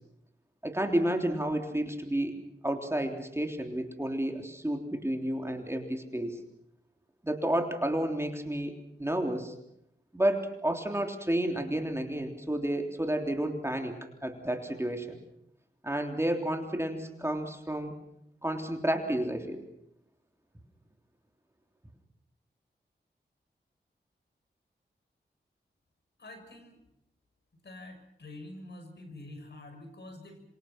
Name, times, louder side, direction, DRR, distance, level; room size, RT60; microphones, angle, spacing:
voice 1, 0.6-2.4 2.6-6.4 7.2-8.7 9.0-9.5 10.1-14.0 14.2-15.2 15.8-17.9 18.4-19.6, right 1 dB, 15° right, 4 dB, 3.4 m, -31 dB
voice 2, 26.2-26.8 27.6-30.4, left 2 dB, 65° left, 5 dB, 6.6 m, -46 dB
27.0 x 25.0 x 6.1 m, 0.77 s
wide cardioid pair, 65°, 19 cm